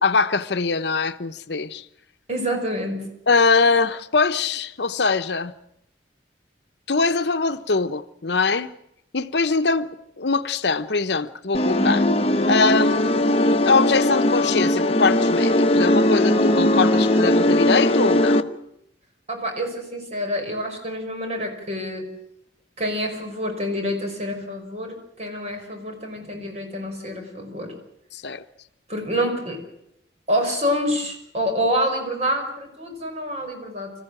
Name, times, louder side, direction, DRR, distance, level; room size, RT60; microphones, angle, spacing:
voice 1, 0.0-1.8 3.3-5.5 6.9-8.7 9.1-12.1 12.4-18.5 28.1-28.4, left 4 dB, 70° left, 0.9 m, -22 dB
voice 2, 2.3-3.1 19.3-22.1 22.8-27.8 28.9-29.6 30.3-33.9, equal, 35° right, 5.7 m, -27 dB
sound 1, 11.5-18.4, left 1 dB, 30° left, 1.1 m, -19 dB
26.0 x 15.0 x 9.0 m
head